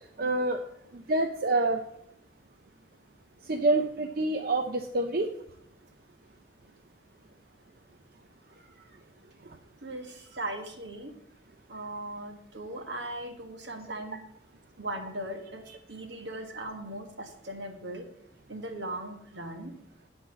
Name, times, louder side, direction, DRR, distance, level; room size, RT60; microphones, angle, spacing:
voice 1, 0.2-0.6 0.9-1.8 3.4-5.3 9.4-9.6, right 2 dB, 55° right, 5 dB, 0.6 m, -27 dB
voice 2, 9.8-11.1 11.7-14.2 14.8-18.1 18.5-19.7, right 1 dB, 75° right, 4 dB, 1.5 m, -38 dB
10.0 x 4.4 x 7.3 m, 0.74 s
head